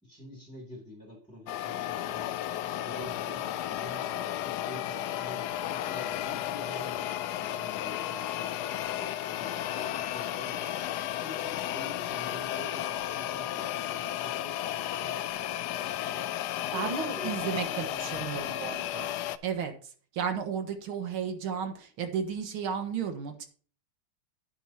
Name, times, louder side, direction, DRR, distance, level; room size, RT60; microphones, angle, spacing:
voice 1, 0.0-5.4 5.7-10.7 11.1-16.9 17.2-18.8, equal, 5° left, -1 dB, 2.7 m, -47 dB
sound 1, 1.5-19.4, left 12 dB, 85° left, 0.8 m, -33 dB
voice 2, 16.7-19.1 19.4-19.7 20.1-23.5, right 7 dB, 80° right, 6 dB, 2.2 m, -33 dB
10.0 x 9.9 x 2.8 m, 0.42 s
omnidirectional pair, 2.3 m